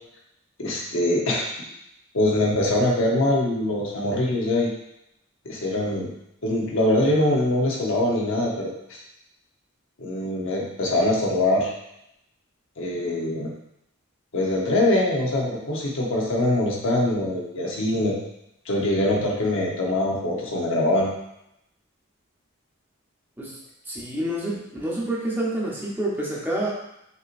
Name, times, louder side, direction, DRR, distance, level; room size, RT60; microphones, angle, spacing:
voice 1, 0.6-1.5 2.1-4.7 5.4-6.1 6.4-9.0 10.0-11.7 12.8-13.5 14.3-18.2 18.7-21.1, left 1 dB, 65° left, -2 dB, 0.9 m, -23 dB
voice 2, 23.9-26.7, right 1 dB, 10° right, -5 dB, 0.8 m, -28 dB
5.6 x 3.0 x 2.5 m, 0.82 s
head